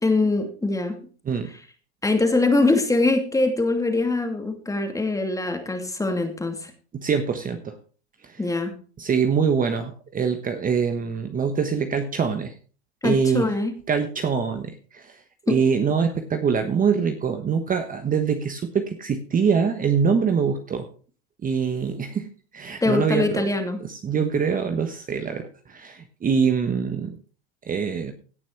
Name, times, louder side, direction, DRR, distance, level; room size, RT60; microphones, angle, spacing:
voice 1, 0.0-1.0 2.0-6.7 8.4-8.7 13.0-13.7 15.5-15.6 22.8-23.8, left 2 dB, 10° left, 5 dB, 2.5 m, -23 dB
voice 2, 6.9-7.8 8.2-8.4 9.0-12.5 13.0-13.5 13.9-15.2 15.5-20.9 21.4-23.5 23.8-27.2 27.7-28.1, right 6 dB, 25° right, 7 dB, 1.3 m, -24 dB
17.0 x 6.0 x 4.6 m, 0.39 s
hypercardioid pair, 105°, 33 cm